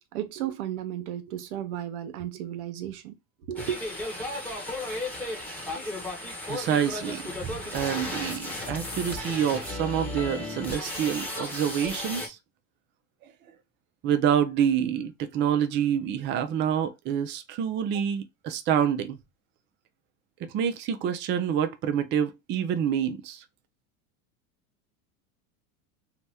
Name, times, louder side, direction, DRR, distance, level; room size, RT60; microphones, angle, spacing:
voice 1, 0.1-3.2 3.5-3.8, right 11 dB, 80° right, 0.8 m, -33 dB
sound 1, 3.6-12.3, left 1 dB, 5° left, 1.0 m, -34 dB
voice 2, 6.4-12.4 14.0-19.2 20.5-23.4, right 9 dB, 30° right, 0.4 m, -27 dB
2.7 x 2.1 x 3.3 m
supercardioid pair, 115°, 43 cm